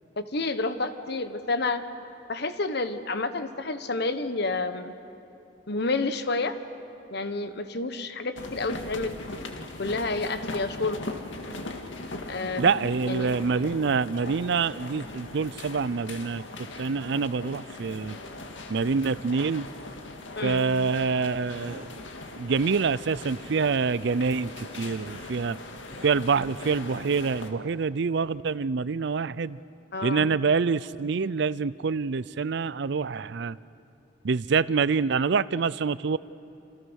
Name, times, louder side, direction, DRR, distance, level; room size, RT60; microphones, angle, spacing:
voice 1, 0.2-1.8 2.3-4.9 5.7-6.6 7.1-9.2 9.8-11.1 12.3-12.7 13.0-13.3 20.4-20.6 29.9-30.3, left 3 dB, 60° left, 10 dB, 1.3 m, -29 dB
sound 1, 8.4-27.5, left 2 dB, 80° left, 2.1 m, -40 dB
voice 2, 12.6-18.2 18.7-19.7 20.4-21.9 22.4-25.6 26.0-29.6 30.0-33.6 34.2-36.2, right 5 dB, 65° right, 18 dB, 0.5 m, -26 dB
28.5 x 27.5 x 6.4 m, 2.7 s
head